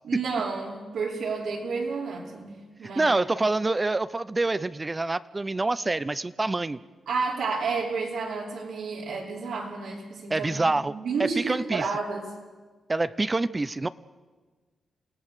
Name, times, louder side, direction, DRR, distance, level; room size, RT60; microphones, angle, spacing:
voice 1, 0.0-3.2 7.1-12.3, right 4 dB, 85° right, -4 dB, 5.2 m, -31 dB
voice 2, 2.8-6.8 10.3-10.9 11.2-11.8 12.9-13.9, right 2 dB, 25° right, 15 dB, 0.6 m, -26 dB
27.5 x 17.5 x 6.6 m, 1.4 s
cardioid pair, 90°, 0 cm